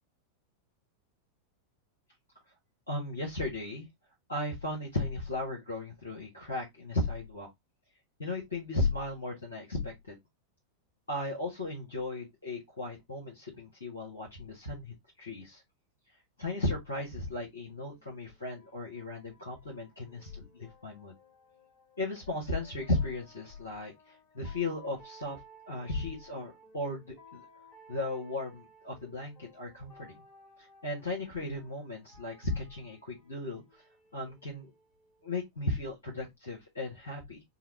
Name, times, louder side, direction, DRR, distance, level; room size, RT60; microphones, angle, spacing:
voice 1, 2.9-3.9 4.3-7.5 8.2-10.2 11.1-15.6 16.4-21.1 22.0-25.4 25.7-27.4 27.9-30.1 30.6-33.8 34.1-34.7 35.2-37.4, left 2 dB, 75° left, 1.4 m, -36 dB
sound 1, 17.9-35.3, equal, 40° left, 1.9 m, -59 dB
5.6 x 2.3 x 3.1 m
figure-of-eight pair, 90°, 0 cm